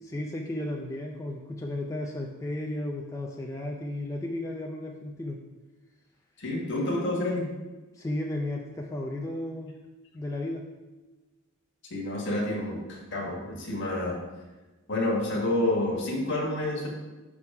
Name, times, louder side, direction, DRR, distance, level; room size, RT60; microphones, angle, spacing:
voice 1, 0.0-5.4 7.9-9.8 10.1-10.7, left 1 dB, 15° left, 0 dB, 0.4 m, -34 dB
voice 2, 6.4-7.5 11.9-14.2 14.9-16.9, left 1 dB, 55° left, -1 dB, 1.4 m, -29 dB
6.1 x 3.7 x 5.5 m, 1.2 s
head